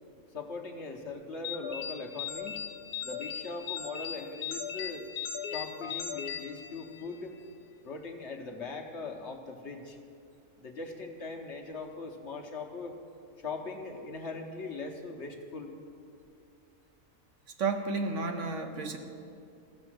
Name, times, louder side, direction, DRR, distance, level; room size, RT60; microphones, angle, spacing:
voice 1, 0.3-2.7 3.0-5.1 5.5-7.3 7.8-10.0 10.6-13.0 13.4-15.7, left 3 dB, 55° left, 3 dB, 1.2 m, -40 dB
sound 1, 1.4-7.2, left 8 dB, 80° left, 1.2 m, -38 dB
voice 2, 17.6-19.0, right 4 dB, 60° right, 5 dB, 1.1 m, -31 dB
15.0 x 6.8 x 7.7 m, 2.5 s
omnidirectional pair, 1.6 m